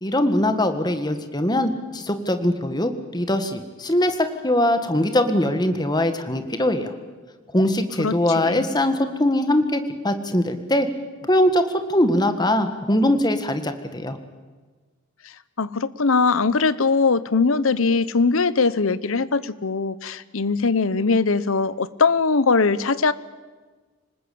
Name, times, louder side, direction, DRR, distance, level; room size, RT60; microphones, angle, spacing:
voice 1, 0.0-6.9 7.5-10.9 11.3-11.6 11.9-14.2, left 1 dB, 20° left, 8 dB, 1.7 m, -21 dB
voice 2, 8.0-8.7 15.6-23.1, left 4 dB, 75° left, 17 dB, 0.9 m, -21 dB
26.0 x 19.5 x 8.6 m, 1.4 s
head